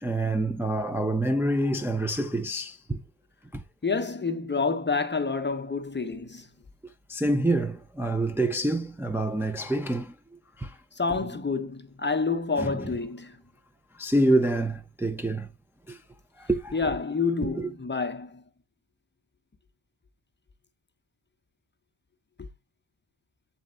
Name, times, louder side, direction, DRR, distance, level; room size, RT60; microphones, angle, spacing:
voice 1, 0.0-3.0 3.5-3.6 7.1-10.1 10.6-10.8 12.6-12.9 14.0-15.5 15.9-16.0 16.4-16.8 17.4-17.7, right 1 dB, 5° right, 0.5 m, -27 dB
voice 2, 3.8-6.5 11.0-13.4 16.7-18.4, left 4 dB, 25° left, 0.8 m, -28 dB
7.9 x 4.2 x 3.8 m
wide cardioid pair, 130°, 45 cm